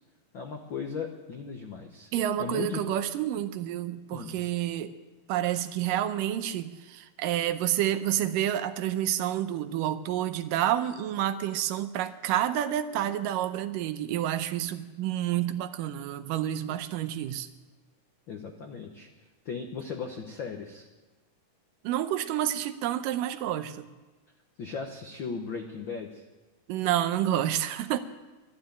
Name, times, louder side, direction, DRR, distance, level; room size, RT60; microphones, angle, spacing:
voice 1, 0.3-2.1 2.4-2.8 4.1-4.4 16.7-16.8 18.3-19.1 19.4-20.9 24.6-26.2, left 5 dB, 80° left, 3 dB, 1.0 m, -37 dB
voice 2, 2.1-4.9 5.3-17.5 21.8-23.9 26.7-28.0, right 12 dB, 85° right, 11 dB, 2.3 m, -29 dB
12.5 x 12.0 x 9.1 m, 1.2 s
omnidirectional pair, 3.9 m